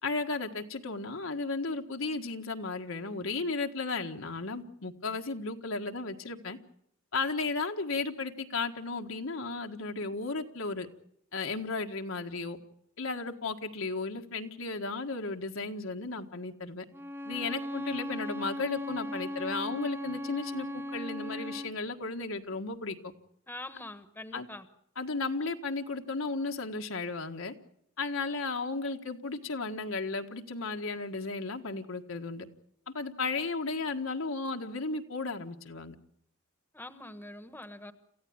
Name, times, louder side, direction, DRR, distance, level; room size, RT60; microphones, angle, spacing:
voice 1, 0.0-6.6 7.1-10.9 11.3-12.6 13.0-16.8 17.2-23.1 24.3-24.5 24.9-27.5 28.0-32.4 32.9-35.9, left 3 dB, 80° left, 4 dB, 1.6 m, -34 dB
Bowed string instrument, 16.9-21.8, left 1 dB, 10° right, 0.9 m, -37 dB
voice 2, 23.5-24.6 36.7-37.9, left 1 dB, 10° left, 11 dB, 1.2 m, -44 dB
27.5 x 15.0 x 8.7 m, 0.73 s
head